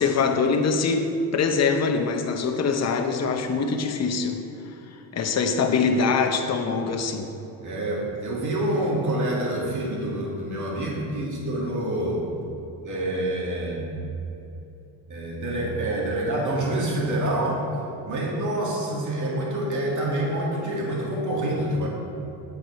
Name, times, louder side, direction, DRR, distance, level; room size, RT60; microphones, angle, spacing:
voice 1, 0.0-4.4 5.1-7.3, left 4 dB, 40° left, 5 dB, 0.9 m, -23 dB
voice 2, 7.6-12.3 12.8-13.9 15.1-17.7 18.0-21.9, right 1 dB, 50° right, -3 dB, 2.4 m, -27 dB
9.5 x 8.4 x 4.5 m, 2.9 s
cardioid pair, 135°, 40 cm